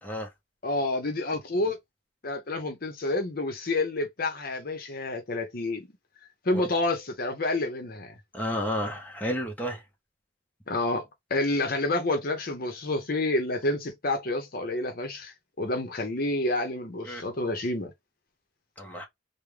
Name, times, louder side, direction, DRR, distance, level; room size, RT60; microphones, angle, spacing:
voice 1, 0.6-1.8 2.2-5.9 6.4-8.1 10.7-17.9, left 2 dB, 50° left, 0.9 m, -29 dB
voice 2, 8.3-9.8 17.0-17.2 18.8-19.0, equal, 10° left, 0.9 m, -31 dB
3.5 x 2.2 x 3.2 m
head